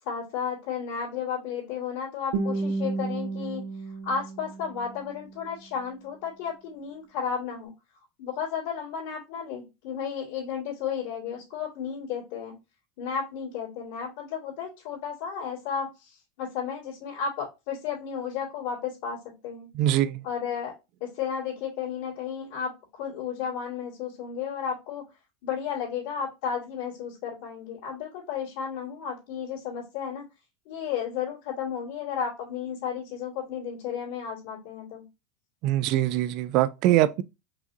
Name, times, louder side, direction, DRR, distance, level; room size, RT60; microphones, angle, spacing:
voice 1, 0.0-3.6 4.0-7.7 8.2-12.6 13.0-19.7 20.2-20.7 21.0-25.0 25.4-30.2 30.7-35.1, left 7 dB, 70° left, 2.1 m, -33 dB
Guitar, 2.3-5.3, right 3 dB, 75° right, 0.9 m, -32 dB
voice 2, 19.8-20.2 35.6-37.2, right 13 dB, 55° right, 0.3 m, -23 dB
4.7 x 2.8 x 2.6 m
supercardioid pair, 125°, 0 cm